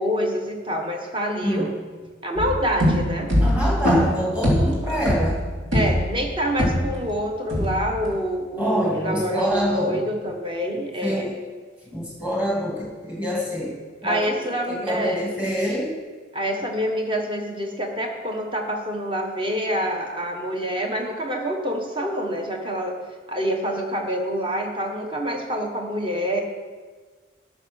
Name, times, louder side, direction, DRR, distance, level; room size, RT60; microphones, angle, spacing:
voice 1, 0.0-1.7 2.2-3.3 5.7-11.3 14.0-15.3 16.3-23.0 23.3-26.4, equal, 25° right, 2 dB, 1.4 m, -26 dB
sound 1, 2.4-7.1 7.5-8.1, equal, 85° right, 2.9 m, -22 dB
voice 2, 3.4-5.4 8.6-10.0 11.0-11.3 11.9-14.3 14.7-16.0, equal, 10° right, -3 dB, 2.7 m, -26 dB
12.0 x 6.5 x 6.5 m, 1.4 s
head